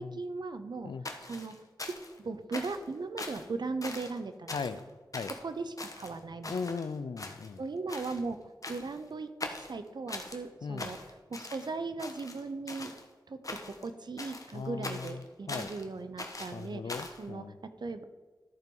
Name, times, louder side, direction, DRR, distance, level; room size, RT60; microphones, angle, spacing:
voice 1, 0.0-0.9 1.2-4.6 5.4-6.5 7.6-11.0 11.3-13.0 13.3-18.0, right 3 dB, 65° right, 10 dB, 0.7 m, -38 dB
sound 1, 1.0-2.2 2.5-2.9 3.2-3.5 3.8-4.2 4.5-4.8 5.1-5.4 5.8-6.9 7.2-7.6 7.9-8.2 8.6-9.0 9.4-10.4 10.8-11.7 12.0-13.0 13.4-13.9 14.2-15.8 16.2-17.2, left 2 dB, 45° left, 1.2 m, -42 dB
voice 2, 4.5-4.9 5.1-5.3 6.5-7.6 10.6-10.9 14.5-15.7 16.5-17.6, left 5 dB, 80° left, 13 dB, 0.5 m, -38 dB
13.5 x 4.6 x 5.4 m, 1.4 s
wide cardioid pair, 60°, 8 cm